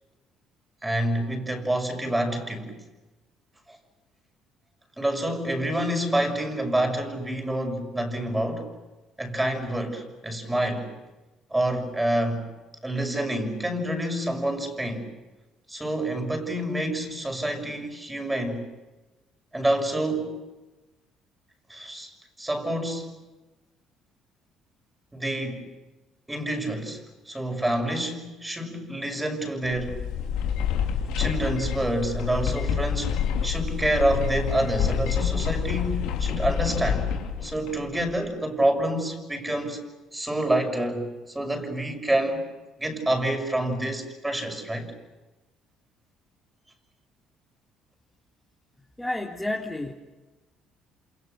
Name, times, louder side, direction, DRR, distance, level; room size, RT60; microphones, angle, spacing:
voice 1, 0.8-2.8 3.7-3.8 5.0-8.7 9.2-10.9 11.5-12.5 12.8-15.1 15.7-18.6 19.5-20.4 21.7-23.1 25.1-25.7 26.3-30.0 31.2-37.1 37.4-39.9 40.1-42.4 42.8-44.9, right 1 dB, 15° right, 5 dB, 6.3 m, -27 dB
sound 1, 29.6-38.2, left 7 dB, 75° left, 2.8 m, -28 dB
voice 2, 49.0-49.9, left 1 dB, 5° left, -2 dB, 3.2 m, -30 dB
28.5 x 27.5 x 6.7 m, 1.1 s
supercardioid pair, 65°, 0 cm